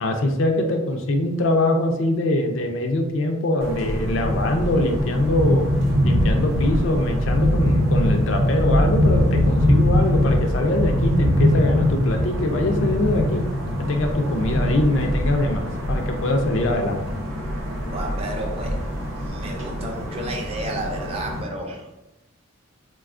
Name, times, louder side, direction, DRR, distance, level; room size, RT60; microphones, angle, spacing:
voice 1, 0.0-5.7 6.0-13.5 13.8-17.0, left 1 dB, 70° left, 4 dB, 0.4 m, -23 dB
sound 1, 3.6-21.4, left 1 dB, 90° right, 0.8 m, -22 dB
voice 2, 17.9-18.8 19.2-21.9, right 1 dB, 30° right, 1 dB, 0.4 m, -32 dB
3.3 x 2.2 x 2.4 m, 0.96 s
head